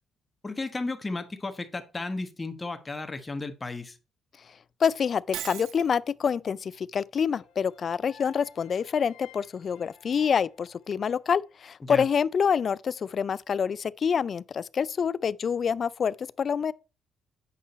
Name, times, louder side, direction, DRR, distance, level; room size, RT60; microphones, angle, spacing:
voice 1, 0.4-3.9 11.9-12.0, left 3 dB, 20° left, 1.2 m, -34 dB
voice 2, 4.8-16.7, left 7 dB, 50° left, 0.4 m, -27 dB
Shatter, 5.3-5.9, right 11 dB, 85° right, 0.8 m, -36 dB
sound 1, 7.3-11.5, left 9 dB, 70° left, 1.7 m, -54 dB
8.5 x 5.5 x 4.1 m
cardioid pair, 90°, 0 cm